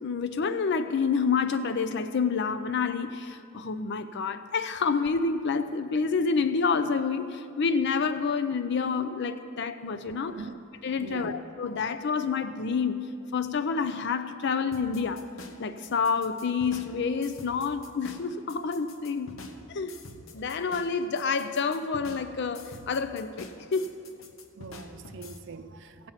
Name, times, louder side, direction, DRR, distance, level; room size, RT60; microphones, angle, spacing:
voice 1, 0.0-10.4 10.8-13.0 13.3-15.2 15.6-19.3 19.7-19.9 20.3-24.0, left 5 dB, 60° left, 11 dB, 0.5 m, -28 dB
voice 2, 10.2-10.6 11.0-11.4 24.6-26.1, right 4 dB, 60° right, 10 dB, 0.6 m, -42 dB
sound 1, 14.7-25.4, left 2 dB, 85° left, 1.1 m, -47 dB
15.5 x 8.8 x 5.7 m, 2.6 s
head